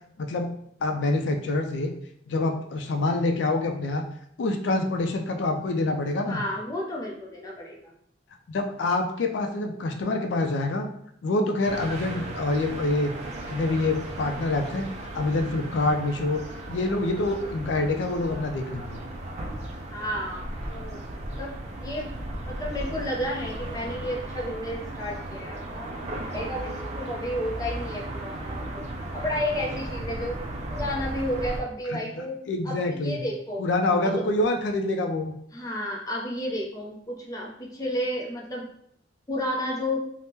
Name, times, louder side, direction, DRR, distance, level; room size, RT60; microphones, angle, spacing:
voice 1, 0.2-1.9 2.3-4.0 4.4-6.4 8.5-10.9 11.2-13.1 13.5-14.9 15.1-16.4 16.7-19.0 31.9-33.2 33.6-35.4, left 2 dB, 80° left, 4 dB, 0.4 m, -26 dB
voice 2, 6.3-7.9 19.9-21.0 21.4-21.5 21.8-22.1 22.5-25.9 26.3-28.9 29.1-30.4 30.7-32.4 32.6-33.6 34.0-34.2 35.5-38.7 39.3-40.0, left 1 dB, 20° left, -2 dB, 0.5 m, -32 dB
sound 1, 11.6-31.6, right 1 dB, 35° right, 0.4 m, -36 dB
3.4 x 2.0 x 2.8 m, 0.69 s
head